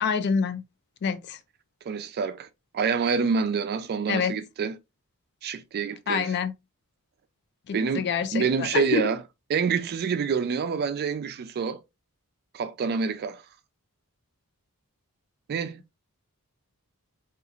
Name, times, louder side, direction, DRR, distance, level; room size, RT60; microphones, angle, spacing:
voice 1, 0.0-0.6 1.0-1.4 4.1-4.3 6.1-6.5 7.7-9.1, left 6 dB, 50° left, 0.4 m, -26 dB
voice 2, 1.9-2.5 2.7-4.8 5.4-6.4 7.7-9.2 9.5-11.8 12.5-13.4 15.5-16.0, right 5 dB, 45° right, 0.3 m, -27 dB
2.8 x 2.4 x 2.4 m
head